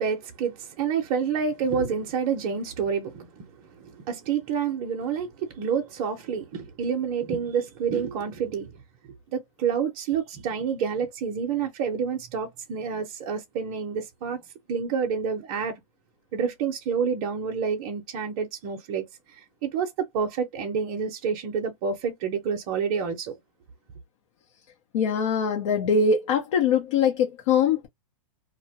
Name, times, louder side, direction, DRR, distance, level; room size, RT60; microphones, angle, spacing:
voice 1, 0.0-8.7 9.3-14.4 14.7-15.7 16.3-19.0 19.6-23.4, right 6 dB, 35° right, 0.6 m, -28 dB
voice 2, 24.9-27.9, left 6 dB, 55° left, 0.7 m, -22 dB
2.4 x 2.1 x 2.7 m
hypercardioid pair, 150°, 18 cm